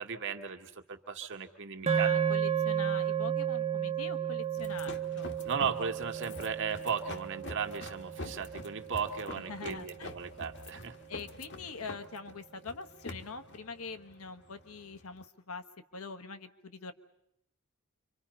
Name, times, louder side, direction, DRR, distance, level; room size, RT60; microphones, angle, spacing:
voice 1, 0.0-2.1 5.5-10.9, right 6 dB, 60° right, 5 dB, 1.8 m, -36 dB
voice 2, 1.8-5.3 9.5-10.1 11.1-15.6 15.9-16.9, left 4 dB, 75° left, 8 dB, 1.3 m, -44 dB
sound 1, 1.9-10.2, right 8 dB, 30° right, 1.0 m, -33 dB
sound 2, 4.6-15.3, left 2 dB, 55° left, 1.5 m, -46 dB
28.0 x 25.0 x 5.5 m, 0.78 s
head